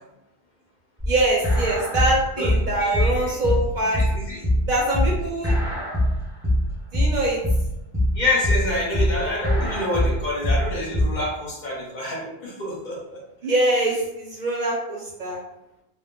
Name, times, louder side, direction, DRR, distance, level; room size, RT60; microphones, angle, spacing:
sound 1, 1.0-11.0, left 1 dB, 5° right, 0.7 m, -22 dB
voice 1, 1.1-4.1 4.7-5.6 6.9-7.4 13.4-15.4, right 1 dB, 55° right, -2 dB, 0.6 m, -23 dB
voice 2, 2.4-3.4 3.9-4.4 8.1-13.2, left 1 dB, 50° left, -3 dB, 0.8 m, -27 dB
2.2 x 2.0 x 3.5 m, 0.88 s
omnidirectional pair, 1.0 m